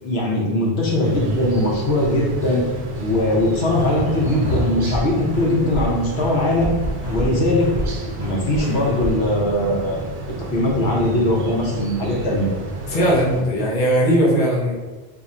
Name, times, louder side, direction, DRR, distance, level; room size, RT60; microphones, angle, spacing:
voice 1, 0.0-2.6 3.0-6.8 7.1-7.7 8.2-10.0 10.5-12.5, left 1 dB, 80° left, -3 dB, 1.1 m, -20 dB
sound 1, 1.0-13.4, right 1 dB, 45° right, 0.5 m, -32 dB
sound 2, 3.7-5.1 5.3-5.9 6.2-7.3 7.6-7.9 8.2-9.2, equal, 25° right, 1.3 m, -27 dB
voice 2, 12.9-14.7, equal, 55° left, -4 dB, 0.9 m, -18 dB
2.7 x 2.5 x 4.2 m, 1.3 s
omnidirectional pair, 1.0 m